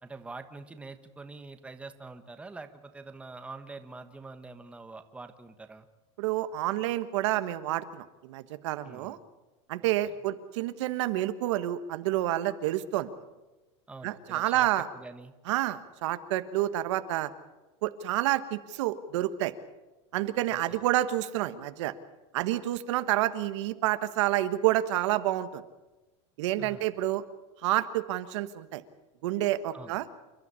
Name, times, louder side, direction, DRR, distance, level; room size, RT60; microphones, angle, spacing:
voice 1, 0.0-5.9 8.8-9.2 9.8-10.2 13.9-15.3 20.5-20.8 26.6-26.8 29.7-29.9, right 3 dB, 10° right, 8 dB, 1.3 m, -45 dB
voice 2, 6.2-9.2 9.7-13.1 14.0-14.9 15.5-17.3 17.8-19.5 20.1-21.9 22.3-25.6 26.4-27.2 27.6-28.8 29.2-30.0, right 14 dB, 75° right, 11 dB, 1.5 m, -29 dB
28.5 x 12.0 x 9.8 m, 1.1 s
supercardioid pair, 150°, 15 cm